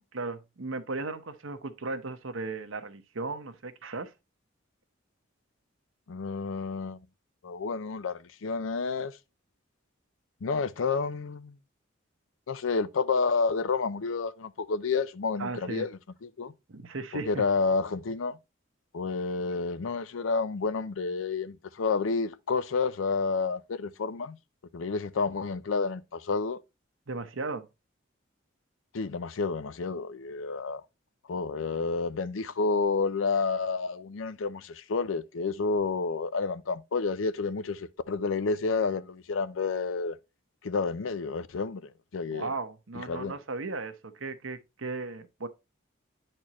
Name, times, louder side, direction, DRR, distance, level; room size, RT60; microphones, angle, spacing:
voice 1, 0.1-4.1 15.4-15.9 16.7-17.3 27.1-27.7 42.3-45.5, right 3 dB, 85° right, 0.9 m, -36 dB
voice 2, 6.1-7.0 7.4-9.2 10.4-11.6 12.5-16.5 17.1-18.4 18.9-24.4 24.7-26.6 28.9-30.8 31.3-40.2 40.6-42.5 43.0-43.3, left 4 dB, 85° left, 0.5 m, -30 dB
9.9 x 4.4 x 3.0 m
head